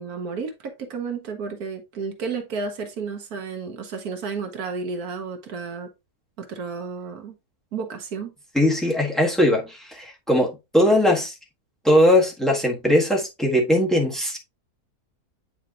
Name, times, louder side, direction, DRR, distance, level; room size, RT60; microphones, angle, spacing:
voice 1, 0.0-5.9 6.4-7.4 7.7-8.3, right 5 dB, 70° right, 1.4 m, -32 dB
voice 2, 8.5-11.3 11.8-14.4, left 1 dB, ahead, 1.5 m, -20 dB
8.6 x 4.5 x 2.4 m
omnidirectional pair, 1.7 m